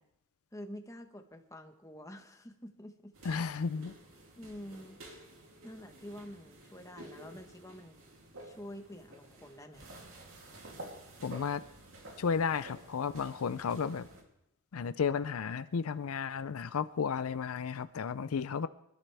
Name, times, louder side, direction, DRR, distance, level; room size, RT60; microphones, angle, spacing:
voice 1, 0.5-3.1 4.4-5.0 5.6-8.0 8.4-9.9, equal, 15° left, 6 dB, 1.1 m, -47 dB
sound 1, 3.1-14.2, right 1 dB, 70° right, 2.9 m, -51 dB
voice 2, 3.2-3.9 11.2-11.6 12.2-14.1 14.7-18.7, left 6 dB, 80° left, 14 dB, 0.5 m, -33 dB
24.5 x 12.5 x 3.4 m, 0.84 s
head